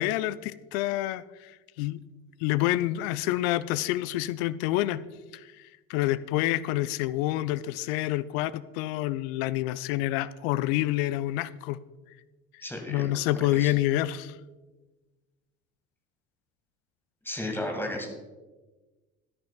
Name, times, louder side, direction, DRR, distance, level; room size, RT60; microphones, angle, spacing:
voice 1, 0.0-1.5 1.8-2.0 2.4-5.0 5.3-5.5 5.9-11.8 12.9-14.4, left 15 dB, 50° left, 0.5 m, -27 dB
voice 2, 12.6-13.7 17.2-18.1, left 1 dB, 5° left, 2.0 m, -34 dB
14.5 x 10.5 x 2.4 m
figure-of-eight pair, 65°, 41 cm